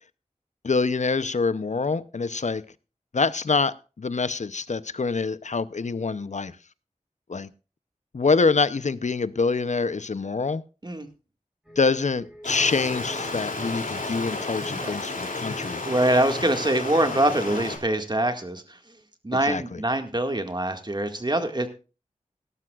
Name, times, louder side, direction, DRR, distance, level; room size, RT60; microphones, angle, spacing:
voice 1, 0.6-2.7 3.1-6.6 7.3-7.5 8.1-10.6 11.8-15.8 19.3-19.8, left 4 dB, 60° left, 0.7 m, -25 dB
sound 1, 11.6-16.6, equal, 5° right, 5.8 m, -47 dB
Stream, 12.4-17.8, left 3 dB, 85° left, 2.8 m, -32 dB
voice 2, 15.8-18.8 19.2-21.7, right 1 dB, 35° right, 1.9 m, -24 dB
18.5 x 12.5 x 2.4 m
wide cardioid pair, 50°, 14 cm